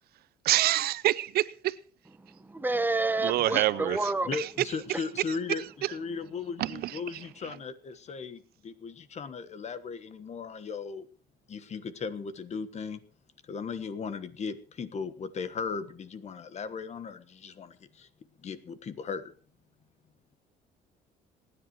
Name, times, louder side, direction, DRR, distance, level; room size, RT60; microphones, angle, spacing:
voice 1, 0.4-1.7 3.2-4.0 4.3-4.5 6.6-6.9, right 14 dB, 70° right, 0.6 m, -26 dB
voice 2, 2.2-4.3, right 2 dB, 10° right, 1.1 m, -29 dB
voice 3, 4.3-11.1 11.5-13.0 13.4-18.1 18.4-19.3, left 5 dB, 40° left, 1.3 m, -37 dB
25.5 x 10.0 x 3.1 m
cardioid pair, 110°, 17 cm